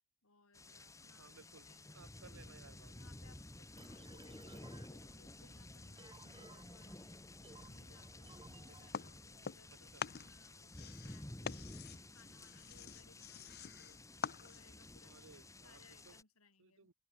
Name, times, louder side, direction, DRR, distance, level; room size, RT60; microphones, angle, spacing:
voice 1, 0.2-1.9 2.9-16.9, left 3 dB, 75° left, 6.1 m, -68 dB
sound 1, 0.5-16.2, left 1 dB, 15° left, 1.5 m, -53 dB
voice 2, 1.1-1.7 1.9-2.9 9.9-10.0 15.0-16.2 16.6-16.9, right 4 dB, 65° right, 1.1 m, -60 dB
sound 2, 3.8-9.5, right 2 dB, 20° right, 5.6 m, -61 dB
sound 3, 8.9-9.7 10.0-14.9, left 7 dB, 45° left, 0.7 m, -46 dB
head